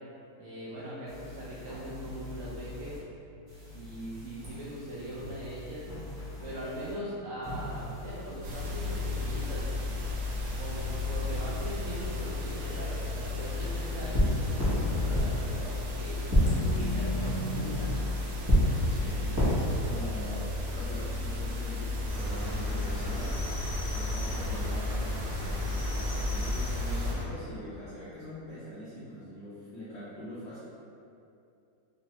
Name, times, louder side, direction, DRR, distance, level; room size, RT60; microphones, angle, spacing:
voice 1, 0.4-3.0 3.7-5.9 6.4-9.7 10.6-16.2 16.7-18.0, right 1 dB, 70° right, -8 dB, 0.8 m, -40 dB
sound 1, 1.1-3.0 3.5-6.9 7.4-9.5 10.0-15.7 16.2-19.5, equal, 30° right, 0.4 m, -33 dB
sound 2, 8.4-27.1, left 3 dB, 90° right, 1.2 m, -34 dB
voice 2, 18.9-19.5 19.8-23.4 23.9-30.6, equal, 70° left, -11 dB, 0.6 m, -43 dB
Cricket, 22.1-27.2, equal, 35° left, 0.7 m, -35 dB
3.2 x 2.1 x 2.8 m, 2.6 s
omnidirectional pair, 1.8 m